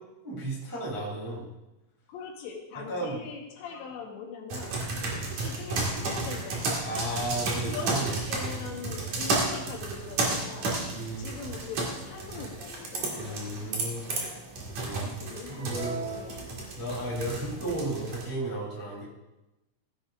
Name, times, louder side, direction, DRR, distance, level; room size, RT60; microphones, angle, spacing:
voice 1, 0.2-1.4 2.9-3.2 5.0-5.2 6.8-8.1 8.5-8.6 10.7-11.3 13.2-14.1 14.6-15.1 15.5-16.0 16.8-19.1, right 1 dB, 5° right, -5 dB, 1.6 m, -34 dB
voice 2, 2.1-4.9 5.3-6.9 7.5-10.8 11.2-13.7 14.9-16.7, left 5 dB, 70° left, 1 dB, 3.3 m, -41 dB
sound 1, 4.5-18.3, right 3 dB, 50° right, 2.5 m, -32 dB
16.0 x 10.5 x 2.5 m, 0.98 s
omnidirectional pair, 5.6 m